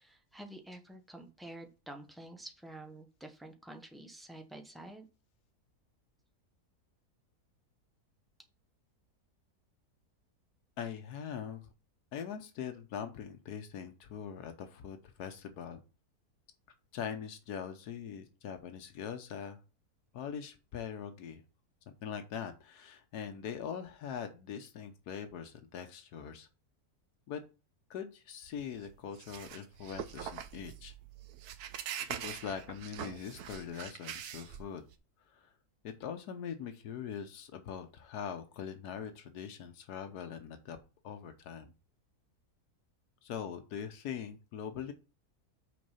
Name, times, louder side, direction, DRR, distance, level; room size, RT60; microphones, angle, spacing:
voice 1, 0.0-5.1, right 1 dB, ahead, 4 dB, 0.6 m, -49 dB
voice 2, 10.8-11.7 12.1-15.8 16.9-19.6 20.1-21.4 22.0-26.5 27.3-27.4 27.9-30.9 32.2-34.8 35.3-35.5 35.8-40.8 41.0-41.7 43.2-44.9, left 7 dB, 90° left, 7 dB, 1.4 m, -42 dB
sound 1, 28.4-35.0, right 9 dB, 80° right, 1.2 m, -43 dB
6.4 x 4.4 x 5.6 m, 0.32 s
omnidirectional pair, 1.6 m